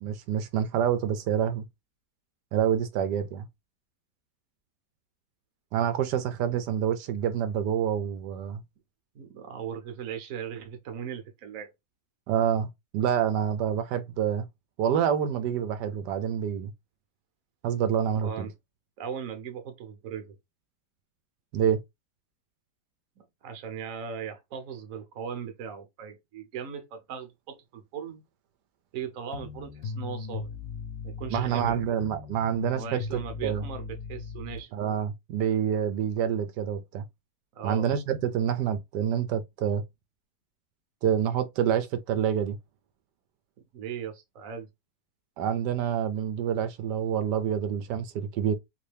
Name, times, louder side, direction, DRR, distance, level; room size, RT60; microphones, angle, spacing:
voice 1, 0.0-1.6 2.5-3.5 5.7-8.6 12.3-14.4 14.8-16.7 17.6-18.5 21.5-21.8 31.3-33.0 33.4-33.6 34.7-37.0 37.6-39.8 41.0-42.6 45.4-48.5, right 9 dB, 85° right, 1.2 m, -27 dB
voice 2, 9.1-11.7 18.2-18.5 19.0-20.4 23.2-28.2 28.9-30.5 31.0-31.8 32.7-34.7 37.5-38.0 43.7-44.7, right 7 dB, 60° right, 1.1 m, -38 dB
sound 1, 29.3-34.6, left 5 dB, 65° left, 1.1 m, -38 dB
3.0 x 2.7 x 3.2 m
omnidirectional pair, 1.8 m